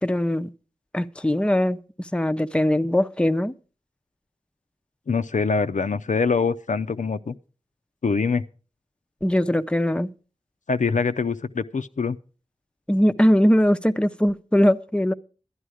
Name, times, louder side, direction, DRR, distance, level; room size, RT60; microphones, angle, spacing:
voice 1, 0.0-0.5 0.9-3.5 9.2-10.1 12.9-15.1, equal, 10° left, 0.5 m, -21 dB
voice 2, 5.1-7.3 8.0-8.4 10.7-12.2, left 5 dB, 85° left, 0.5 m, -24 dB
11.0 x 11.0 x 4.9 m
wide cardioid pair, 45°, 12 cm